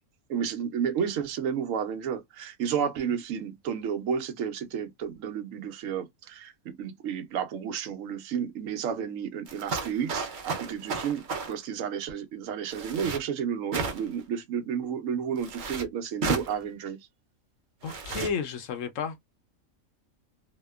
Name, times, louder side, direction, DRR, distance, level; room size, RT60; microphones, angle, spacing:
voice 1, 0.3-17.0, right 7 dB, 70° right, 1.0 m, -32 dB
sound 1, 9.5-11.5 12.7-13.2 13.7-14.2 15.4-15.8 16.2-16.5 17.8-18.3, right 4 dB, 55° right, 0.5 m, -33 dB
voice 2, 17.8-19.3, left 6 dB, 70° left, 0.9 m, -32 dB
2.8 x 2.1 x 2.2 m
omnidirectional pair, 1.5 m